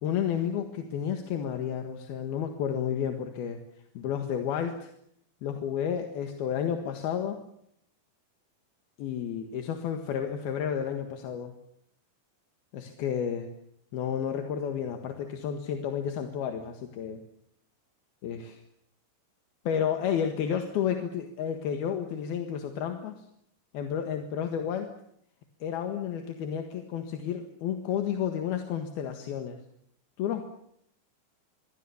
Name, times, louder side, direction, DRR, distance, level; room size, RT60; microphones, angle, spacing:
voice 1, 0.0-3.6 4.0-4.9 5.4-7.4 9.0-11.5 12.7-13.5 13.9-17.2 18.2-18.6 19.7-23.2 23.7-24.9 25.6-29.6 30.2-30.4, left 8 dB, 85° left, 5 dB, 3.6 m, -31 dB
25.0 x 24.0 x 7.1 m, 0.71 s
omnidirectional pair, 4.3 m